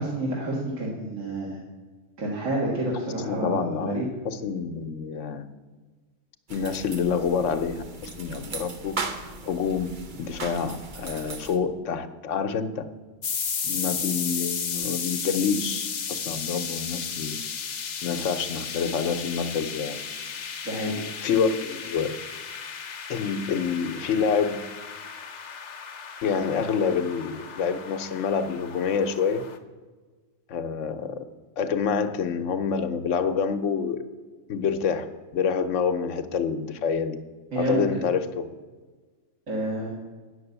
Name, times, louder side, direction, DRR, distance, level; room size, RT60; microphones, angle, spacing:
voice 1, 0.0-1.6 2.2-4.1 20.6-20.9 37.5-37.9 39.5-40.0, right 1 dB, 85° right, -5 dB, 2.1 m, -29 dB
voice 2, 3.3-5.5 6.5-9.0 9.5-12.8 13.6-17.4 18.0-20.0 20.8-20.9 21.2-22.1 23.1-24.6 26.2-29.4 30.5-31.2 31.6-34.0 34.5-37.2 37.6-38.5, left 6 dB, 75° left, 8 dB, 1.1 m, -27 dB
sound 1, 6.5-11.6, right 3 dB, 45° right, 0.9 m, -37 dB
sound 2, 13.2-29.6, left 6 dB, 45° left, 0.7 m, -34 dB
8.8 x 6.5 x 8.0 m, 1.4 s
omnidirectional pair, 1.3 m